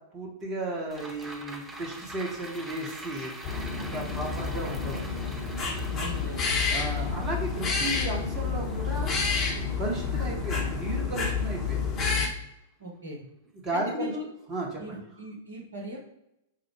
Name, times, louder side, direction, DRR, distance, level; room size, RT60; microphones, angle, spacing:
voice 1, 0.1-3.3 3.9-5.2 6.7-9.1 9.8-12.0 13.6-14.1 14.5-15.0, right 2 dB, 25° right, -1 dB, 0.9 m, -34 dB
sound 1, 0.9-11.4 11.8-11.9, right 1 dB, 10° right, 0.5 m, -45 dB
sound 2, 3.4-12.3, left 5 dB, 30° left, 0.8 m, -29 dB
voice 2, 5.9-6.5 12.8-13.2 13.7-14.3 14.8-16.0, left 1 dB, 70° right, -1 dB, 1.0 m, -38 dB
5.6 x 2.0 x 3.1 m, 0.83 s
figure-of-eight pair, 95°, 0 cm